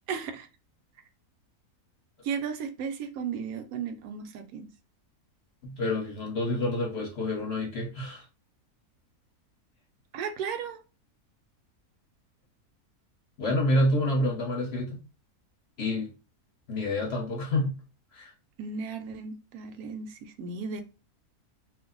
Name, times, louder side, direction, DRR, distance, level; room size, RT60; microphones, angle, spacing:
voice 1, 0.1-0.5 2.2-4.7 10.1-10.8 18.6-20.8, right 6 dB, 75° right, 1.0 m, -35 dB
voice 2, 5.6-8.2 13.4-15.0 15.8-16.1 16.7-17.8 18.1-18.3, left 1 dB, 50° left, 0.9 m, -28 dB
2.6 x 2.1 x 3.7 m
omnidirectional pair, 1.6 m